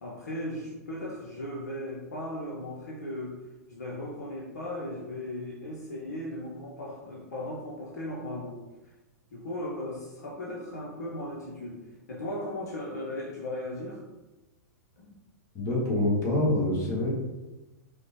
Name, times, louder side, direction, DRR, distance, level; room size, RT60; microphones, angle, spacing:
voice 1, 0.0-3.4 3.7-8.6 9.3-11.8 12.1-14.0 15.0-15.1, left 1 dB, 65° left, -3 dB, 0.7 m, -37 dB
voice 2, 15.5-17.1, left 1 dB, 35° left, -3 dB, 1.3 m, -26 dB
5.0 x 2.2 x 3.0 m, 1.1 s
figure-of-eight pair, 100°, 9 cm